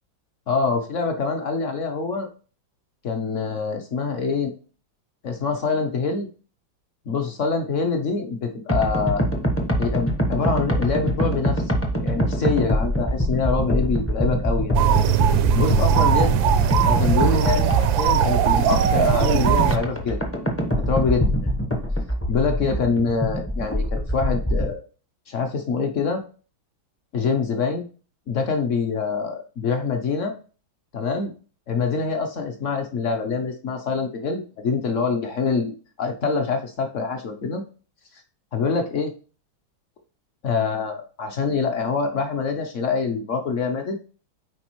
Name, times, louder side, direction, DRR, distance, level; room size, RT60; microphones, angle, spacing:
voice 1, 0.5-2.3 3.0-4.5 5.2-6.3 7.1-9.2 9.8-14.8 15.5-16.3 16.9-20.2 20.9-21.5 22.3-24.8 25.3-26.2 27.1-27.8 28.3-30.3 30.9-31.3 31.7-37.6 38.5-39.1 40.4-44.0, left 5 dB, 55° left, 5 dB, 0.8 m, -25 dB
sound 1, 8.7-24.7, equal, 15° left, 0.4 m, -24 dB
sound 2, 14.7-19.8, right 10 dB, 80° right, 1.3 m, -20 dB
9.3 x 4.1 x 3.1 m, 0.37 s
omnidirectional pair, 2.2 m